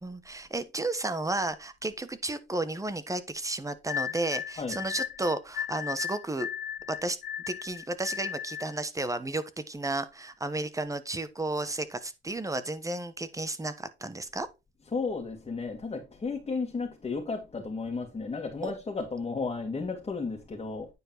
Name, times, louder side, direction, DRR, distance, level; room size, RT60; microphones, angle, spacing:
voice 1, 0.0-6.5 6.9-7.2 7.5-14.5 18.6-18.7, right 2 dB, 15° right, 1.2 m, -33 dB
sound 1, 3.9-8.8, left 9 dB, 55° left, 0.5 m, -36 dB
voice 2, 14.9-20.9, left 4 dB, 30° left, 2.2 m, -33 dB
9.6 x 4.6 x 4.5 m
cardioid pair, 90°, 20 cm